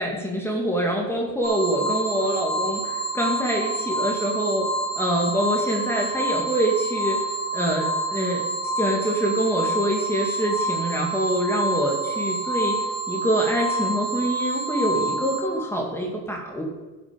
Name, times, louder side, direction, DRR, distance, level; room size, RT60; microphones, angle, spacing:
voice 1, 0.0-4.7 5.0-7.2 7.5-8.4 8.8-12.7 13.1-16.6, equal, 5° left, 0 dB, 2.3 m, -25 dB
sound 1, 1.4-15.4, right 2 dB, 25° right, 3.1 m, -27 dB
11.5 x 7.4 x 5.3 m, 1.2 s
supercardioid pair, 90°, 40 cm